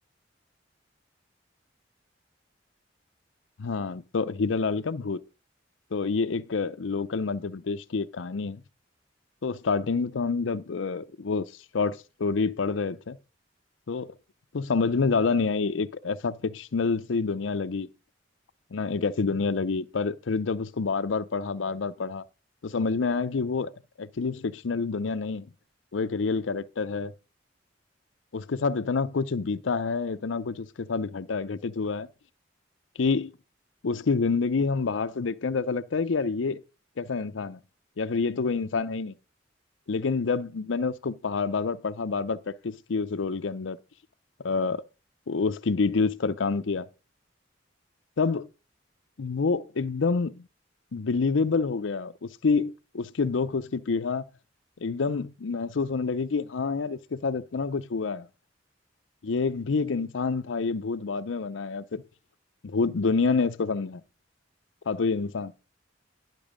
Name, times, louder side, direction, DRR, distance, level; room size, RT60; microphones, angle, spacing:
voice 1, 3.6-5.2 5.9-8.6 9.4-11.5 11.7-13.2 13.9-14.1 14.5-17.9 18.7-22.2 22.6-23.7 24.0-25.4 25.9-27.1 28.3-32.1 33.0-33.3 33.8-36.6 37.0-37.6 38.0-39.2 39.9-43.8 44.4-44.8 45.3-46.9 48.2-48.5 49.2-50.4 50.9-54.2 54.8-58.3 59.2-62.0 62.6-64.0 64.9-65.5, left 4 dB, 85° left, 0.6 m, -27 dB
10.5 x 6.0 x 5.0 m
head